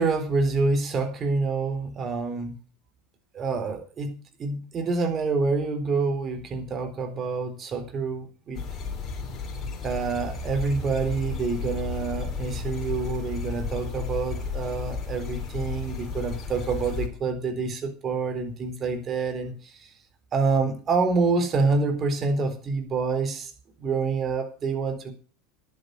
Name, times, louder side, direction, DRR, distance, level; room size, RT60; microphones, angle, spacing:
voice 1, 0.0-2.6 3.3-8.6 9.8-19.9 20.3-23.5 23.8-25.1, right 4 dB, 35° right, 6 dB, 3.9 m, -27 dB
sound 1, 8.5-17.1, left 4 dB, 35° left, 3.5 m, -33 dB
10.5 x 9.4 x 6.5 m, 0.39 s
hypercardioid pair, 80°, 0 cm